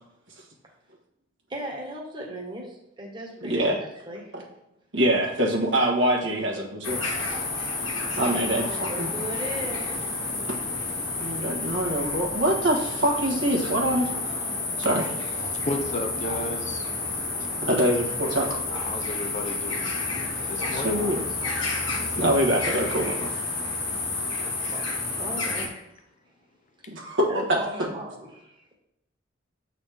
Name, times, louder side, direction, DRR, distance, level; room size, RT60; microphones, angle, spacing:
voice 1, 1.5-4.3 7.8-10.0 19.0-19.1 20.4-20.5 21.0-21.4 24.3-24.4 24.7-24.8 25.2-25.7 27.3-28.6, right 1 dB, 25° right, -2 dB, 1.4 m, -37 dB
voice 2, 3.4-3.8 4.3-4.4 4.9-7.0 8.2-9.1 10.5-10.6 11.2-14.1 14.8-15.4 17.6-18.6 20.7-21.2 22.2-23.3 26.9-27.4, right 1 dB, 70° right, -1 dB, 1.3 m, -24 dB
sound 1, 6.8-25.7, left 3 dB, 80° left, 1.6 m, -30 dB
voice 3, 15.5-16.9 18.3-18.4 18.8-19.9 20.4-21.1 22.1-22.3 24.4-24.7, left 1 dB, 40° left, 5 dB, 0.6 m, -33 dB
7.6 x 4.0 x 3.4 m, 0.83 s
head